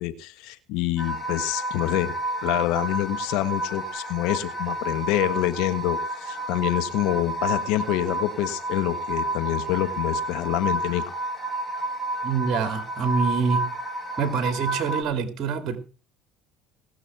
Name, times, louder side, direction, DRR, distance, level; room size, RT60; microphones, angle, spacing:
voice 1, 0.0-2.1 2.4-11.1, left 14 dB, 70° left, 1.5 m, -26 dB
sound 1, 1.0-15.0, right 1 dB, 10° left, 4.0 m, -30 dB
voice 2, 12.2-13.7 14.2-15.8, right 6 dB, 50° right, 2.4 m, -26 dB
19.5 x 6.6 x 6.0 m
supercardioid pair, 90°, 0 cm